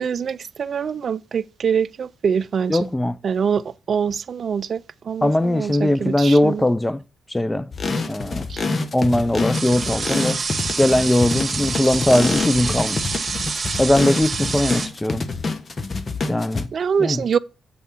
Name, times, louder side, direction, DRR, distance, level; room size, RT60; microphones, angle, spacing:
voice 1, 0.0-2.8 3.2-6.6 8.5-8.6 16.7-17.4, right 6 dB, 60° right, 0.3 m, -24 dB
voice 2, 2.7-3.2 5.2-7.0 7.3-7.7 8.1-8.5 8.9-10.4 10.8-13.2 13.8-15.3 16.3-16.7 17.0-17.2, left 1 dB, 15° left, 0.5 m, -20 dB
sound 1, 7.7-16.6, left 3 dB, 45° left, 1.1 m, -27 dB
sound 2, 9.5-14.9, right 4 dB, 45° right, 1.6 m, -27 dB
8.3 x 3.5 x 6.2 m
supercardioid pair, 60°, 0 cm